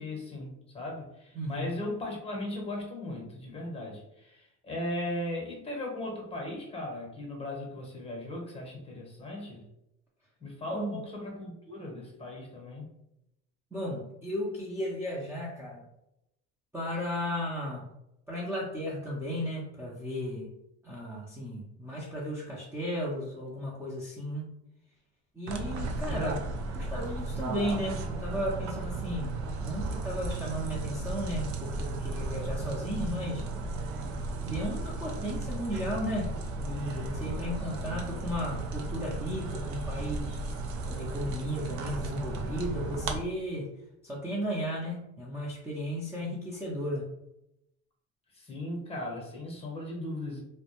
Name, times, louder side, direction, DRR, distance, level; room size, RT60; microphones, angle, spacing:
voice 1, 0.0-9.7 10.4-12.9 37.7-38.0 48.3-50.4, left 1 dB, 20° left, 0 dB, 0.8 m, -37 dB
voice 2, 1.3-1.7 10.7-11.0 13.7-15.8 16.7-17.8 18.3-20.5 20.8-24.5 25.3-26.4 26.7-33.4 34.4-36.3 36.6-40.4 40.9-43.7 44.0-47.1, equal, 10° right, -6 dB, 0.6 m, -35 dB
sound 1, 25.5-43.2, right 2 dB, 65° right, 0.5 m, -35 dB
2.1 x 2.1 x 2.9 m, 0.84 s
supercardioid pair, 100°, 31 cm